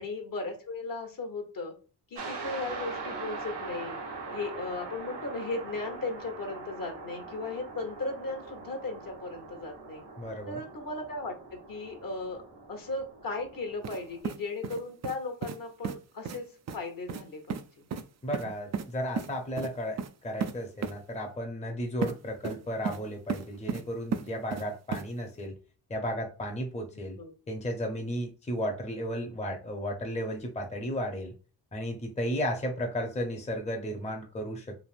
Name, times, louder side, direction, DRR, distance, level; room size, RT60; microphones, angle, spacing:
voice 1, 0.0-1.7 2.1-4.0 4.3-10.0 10.5-12.4 12.7-16.5 16.7-17.9 27.2-27.3, left 3 dB, 55° left, 4 dB, 1.0 m, -36 dB
sound 1, 2.2-14.2, right 3 dB, 85° right, 1.0 m, -42 dB
voice 2, 10.2-10.6 18.2-25.6 25.9-27.2 27.5-31.3 31.7-34.8, equal, 15° left, 2 dB, 0.7 m, -34 dB
sound 2, 13.8-14.0 14.2-15.2 15.4-15.6 15.8-16.0 16.2-16.4 16.7-16.8 17.1-17.2 17.5-17.6 17.9-18.0 18.3-18.9 19.2-19.3 19.6-19.7 20.0-20.1 20.4-20.5 20.8-20.9 22.0-22.1 22.4-23.0 23.3-23.8 24.1-24.6 24.9-25.0, right 6 dB, 40° right, 0.4 m, -33 dB
3.3 x 2.5 x 2.4 m, 0.37 s
cardioid pair, 55°, 41 cm